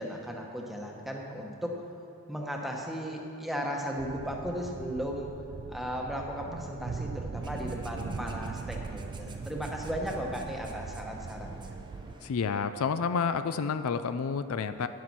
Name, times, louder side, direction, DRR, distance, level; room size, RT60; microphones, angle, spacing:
voice 1, 0.0-1.7 2.3-5.3 5.7-11.8, equal, ahead, 0 dB, 1.0 m, -36 dB
sound 1, 4.0-12.1, right 4 dB, 40° right, 0.3 m, -40 dB
sound 2, 7.3-12.3, right 2 dB, 20° right, 0.7 m, -49 dB
voice 2, 12.2-14.9, left 5 dB, 70° left, 11 dB, 0.4 m, -29 dB
10.0 x 9.3 x 6.0 m, 2.8 s
head